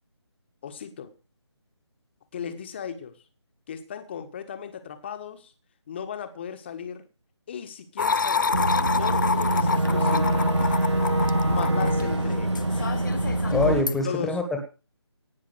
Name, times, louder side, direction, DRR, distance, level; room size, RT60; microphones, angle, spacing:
voice 1, 0.6-1.1 2.3-3.1 3.7-5.5 5.9-7.0 7.5-8.6 9.0-10.5 11.5-12.9 14.0-14.4, left 8 dB, 25° left, 1.5 m, -36 dB
sound 1, 8.0-14.0, left 5 dB, 45° left, 0.6 m, -28 dB
Boat Water vehicle / Engine, 8.5-13.8, right 1 dB, 80° right, 2.3 m, -24 dB
voice 2, 13.5-14.6, left 2 dB, ahead, 1.7 m, -24 dB
18.0 x 6.1 x 7.8 m
figure-of-eight pair, 155°, 15 cm